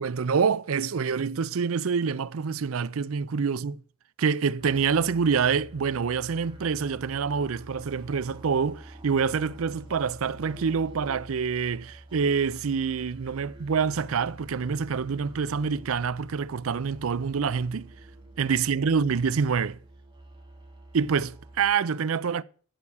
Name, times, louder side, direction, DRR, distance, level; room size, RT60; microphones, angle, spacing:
voice 1, 0.0-3.8 4.2-17.9 18.4-19.8 20.9-22.4, right 6 dB, 90° right, 0.5 m, -26 dB
sound 1, 4.6-21.7, right 1 dB, 25° right, 3.4 m, -47 dB
14.0 x 4.8 x 8.6 m
head